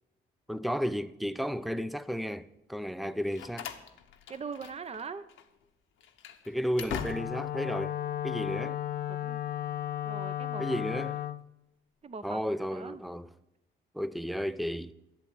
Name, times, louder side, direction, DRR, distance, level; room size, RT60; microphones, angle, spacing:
voice 1, 0.5-3.7 6.5-8.8 10.6-11.2 12.2-13.3 13.9-14.9, equal, ahead, 0.5 m, -33 dB
Slam, 3.0-5.0 5.3-5.5 6.0-7.6, left 8 dB, 80° left, 1.1 m, -42 dB
voice 2, 4.3-5.3 9.1-9.4 10.0-10.8 12.0-12.4 12.7-13.0, right 5 dB, 30° right, 0.8 m, -41 dB
Wind instrument woodwind instrument, 6.9-11.4, left 12 dB, 50° left, 0.7 m, -34 dB
11.5 x 7.9 x 8.6 m
cardioid pair, 90°, 20 cm